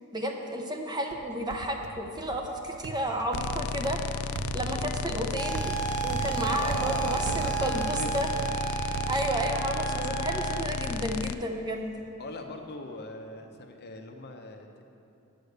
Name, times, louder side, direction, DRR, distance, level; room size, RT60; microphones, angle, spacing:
voice 1, 0.1-4.0 4.5-5.7 6.0-8.3 9.1-11.9, right 1 dB, 20° right, 2 dB, 0.7 m, -32 dB
sound 1, 1.1-9.9, right 5 dB, 50° right, 0.3 m, -40 dB
sound 2, 3.3-11.3, left 5 dB, 85° left, 0.3 m, -34 dB
sound 3, 5.4-10.6, right 9 dB, 75° right, 1.9 m, -33 dB
voice 2, 6.5-8.2 12.2-14.8, left 2 dB, 50° left, 4 dB, 0.7 m, -40 dB
9.4 x 6.4 x 6.6 m, 2.6 s
head